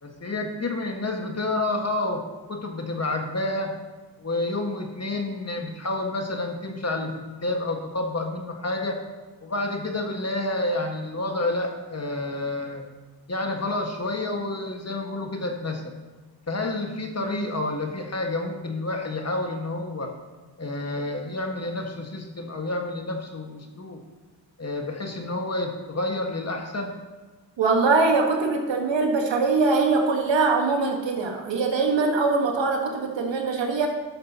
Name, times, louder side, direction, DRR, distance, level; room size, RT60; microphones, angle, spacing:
voice 1, 0.0-2.2 2.5-3.7 4.2-7.1 7.4-9.0 9.4-12.8 13.3-15.8 16.5-20.1 20.6-24.0 24.6-26.9, left 2 dB, 35° left, 3 dB, 1.6 m, -29 dB
voice 2, 27.6-33.9, right 3 dB, 75° right, 2 dB, 1.5 m, -22 dB
11.5 x 6.6 x 2.9 m, 1.3 s
supercardioid pair, 45°, 45 cm